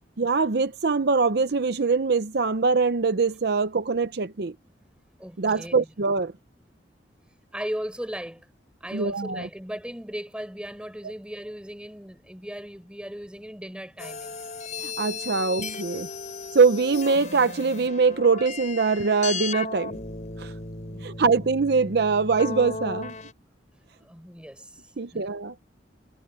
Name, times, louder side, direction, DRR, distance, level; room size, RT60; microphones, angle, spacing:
voice 1, 0.2-4.5 5.4-6.3 8.9-9.5 14.8-16.1 16.5-20.0 20.4-20.5 21.0-23.1 25.0-25.5, right 4 dB, 65° right, 0.7 m, -23 dB
voice 2, 5.2-5.9 7.5-8.5 8.8-14.5 20.9-21.2 23.7-24.8 25.1-25.3, equal, 5° right, 5.5 m, -37 dB
sound 1, 14.0-23.3, left 4 dB, 45° left, 3.9 m, -36 dB
head